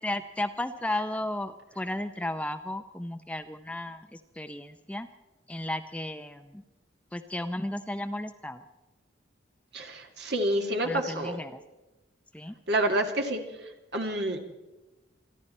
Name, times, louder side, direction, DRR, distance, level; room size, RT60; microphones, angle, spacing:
voice 1, 0.0-5.1 5.5-6.6 7.1-8.6 10.8-11.6 12.3-12.5, left 1 dB, 5° left, 9 dB, 0.5 m, -34 dB
voice 2, 9.7-11.4 12.7-13.4 13.9-14.4, right 1 dB, 60° right, 4 dB, 2.2 m, -28 dB
27.5 x 11.5 x 4.3 m, 1.0 s
head